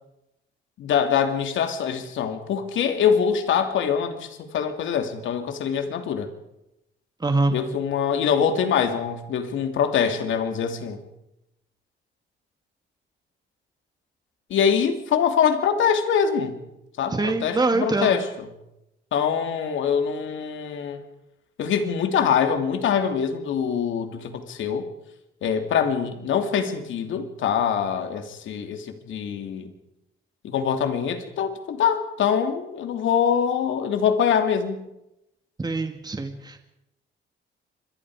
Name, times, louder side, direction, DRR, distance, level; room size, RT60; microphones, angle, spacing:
voice 1, 0.8-6.3 7.5-11.0 14.5-16.6 17.0-18.5 19.1-21.0 21.6-24.9 25.4-29.7 30.4-34.9, left 7 dB, 75° left, 7 dB, 2.9 m, -24 dB
voice 2, 7.2-7.5 17.1-18.2 35.6-36.6, right 2 dB, 20° right, 6 dB, 2.3 m, -24 dB
27.0 x 23.0 x 5.0 m, 0.87 s
cardioid pair, 90°, 20 cm